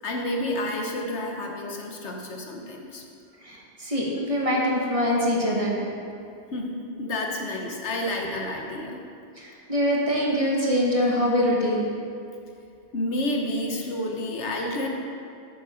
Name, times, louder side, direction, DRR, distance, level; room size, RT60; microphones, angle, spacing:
voice 1, 0.0-3.0 6.5-9.0 12.9-14.9, left 1 dB, 75° left, 1 dB, 1.3 m, -30 dB
voice 2, 3.4-5.9 9.4-11.9, equal, 30° right, -4 dB, 1.4 m, -24 dB
9.5 x 6.7 x 5.0 m, 2.5 s
omnidirectional pair, 1.2 m